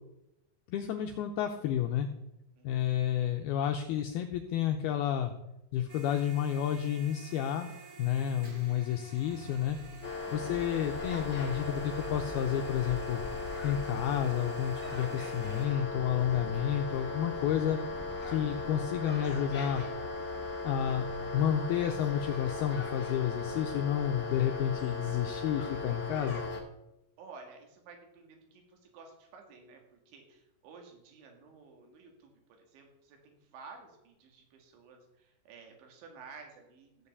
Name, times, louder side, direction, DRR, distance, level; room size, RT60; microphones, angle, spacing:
voice 1, 0.7-2.1 2.6-5.3 5.7-7.7 8.0-9.8 10.3-13.2 13.6-17.8 18.3-19.9 20.6-26.4, left 10 dB, 80° left, 4 dB, 2.3 m, -30 dB
voice 2, 2.6-3.0 8.2-8.8 20.8-21.4 27.2-32.3 32.6-37.1, right 4 dB, 80° right, 3 dB, 4.5 m, -53 dB
sound 1, 5.9-15.7, right 2 dB, 40° right, 3.1 m, -51 dB
Brass instrument, 9.2-13.4, right 3 dB, 65° right, 3.0 m, -52 dB
sound 2, 10.0-26.6, left 3 dB, 40° left, 1.0 m, -37 dB
14.5 x 5.7 x 8.0 m, 0.87 s
omnidirectional pair, 5.3 m